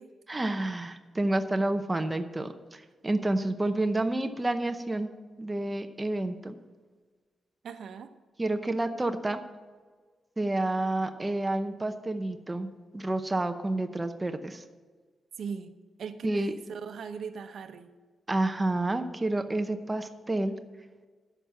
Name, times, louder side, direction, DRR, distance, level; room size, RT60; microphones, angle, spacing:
voice 1, 0.3-5.1 5.4-6.6 8.4-9.4 10.4-12.7 12.9-14.6 16.2-16.5 18.3-20.6, right 2 dB, 15° right, 7 dB, 0.8 m, -29 dB
voice 2, 7.6-8.1 15.4-15.7 16.0-17.9, right 6 dB, 65° right, 8 dB, 0.9 m, -38 dB
10.5 x 6.9 x 7.5 m, 1.4 s
wide cardioid pair, 160°, 0 cm